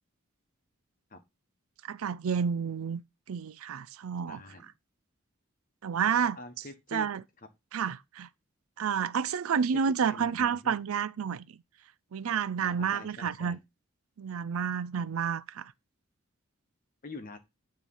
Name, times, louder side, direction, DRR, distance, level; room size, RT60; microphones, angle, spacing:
voice 1, 1.8-3.0 3.3-4.4 5.8-6.4 6.9-7.2 7.7-8.3 8.8-11.5 12.1-13.6 14.2-15.7, right 7 dB, 80° right, 0.4 m, -30 dB
voice 2, 4.3-4.7 6.4-7.1 10.0-10.8 12.6-13.6 17.0-17.4, left 3 dB, 40° left, 1.2 m, -45 dB
9.2 x 3.2 x 5.5 m
head